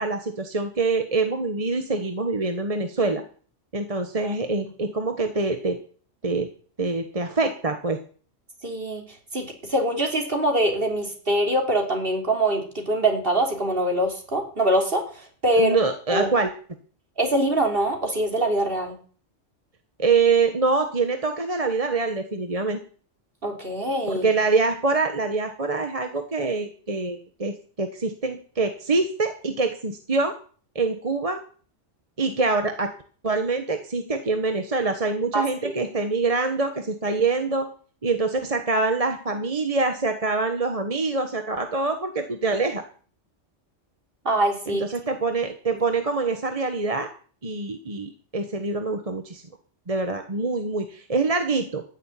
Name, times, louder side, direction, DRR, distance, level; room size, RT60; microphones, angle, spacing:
voice 1, 0.0-3.2 3.7-5.8 6.2-6.5 6.8-8.0 15.6-16.5 20.0-22.8 24.1-30.3 30.7-31.4 32.2-32.9 33.2-37.7 38.0-42.8 44.7-47.1 47.4-49.4 49.9-51.8, right 3 dB, 30° right, 6 dB, 1.2 m, -25 dB
voice 2, 8.6-9.0 9.3-15.8 16.1-16.3 17.2-19.0 23.4-24.3 35.3-35.7 44.2-44.8, right 1 dB, 45° right, 2 dB, 3.6 m, -24 dB
15.0 x 7.0 x 10.0 m, 0.44 s
omnidirectional pair, 1.3 m